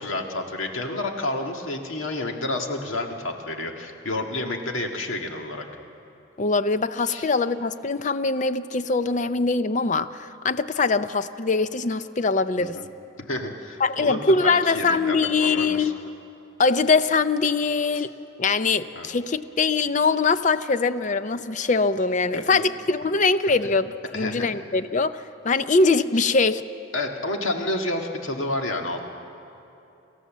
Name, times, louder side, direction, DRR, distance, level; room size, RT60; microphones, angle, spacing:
voice 1, 0.0-5.7 7.1-7.3 12.6-12.9 13.3-15.9 17.9-18.0 19.0-19.1 22.3-22.6 24.1-24.5 26.9-29.1, left 2 dB, 75° left, 3 dB, 1.8 m, -30 dB
voice 2, 6.4-12.8 13.8-16.0 16.6-18.1 18.4-26.6, left 4 dB, 35° left, 12 dB, 0.5 m, -22 dB
27.5 x 14.0 x 7.4 m, 2.9 s
head